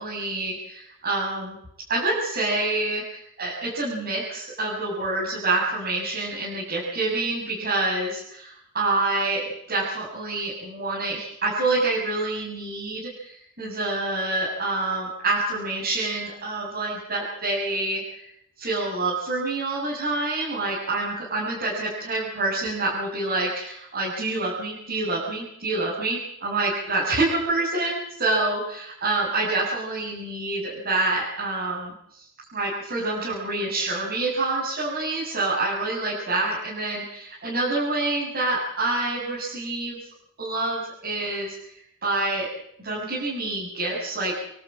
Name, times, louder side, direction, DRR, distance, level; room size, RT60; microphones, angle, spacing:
voice 1, 0.0-1.6 1.9-18.2 18.6-32.2 32.5-40.0 40.4-41.7 42.0-42.5 42.8-44.4, right 2 dB, 45° right, -6 dB, 7.6 m, -27 dB
28.0 x 12.5 x 8.8 m, 0.75 s
head